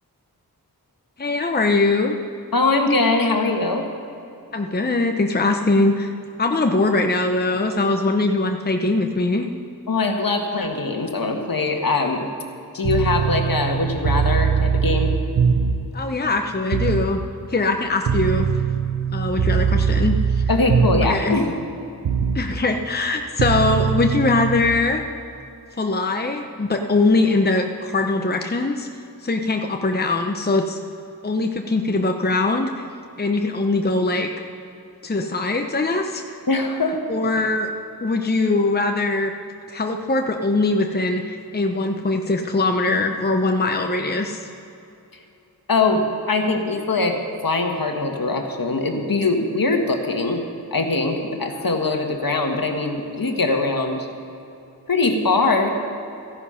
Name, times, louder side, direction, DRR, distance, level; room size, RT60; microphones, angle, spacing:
voice 1, 1.2-2.1 4.5-6.1 6.4-9.5 15.9-17.2 17.5-18.5 19.1-20.4 21.0-21.4 22.3-25.0 25.8-28.9 29.2-30.8 31.2-32.9 33.2-34.3 35.0-36.4 37.1-37.7 38.0-39.3 39.7-44.5, left 2 dB, 25° left, 4 dB, 0.8 m, -21 dB
voice 2, 2.5-3.9 9.9-12.3 12.7-15.1 20.5-21.5 36.5-37.0 45.7-47.2 47.4-50.4 50.7-54.1 54.9-55.8, left 3 dB, 60° left, 3 dB, 1.6 m, -22 dB
sound 1, 12.8-15.9 16.7-17.1 18.1-21.2 22.0-22.4 23.4-24.6, right 6 dB, 90° right, 0.8 m, -21 dB
15.0 x 10.0 x 5.7 m, 2.7 s
cardioid pair, 40°, 39 cm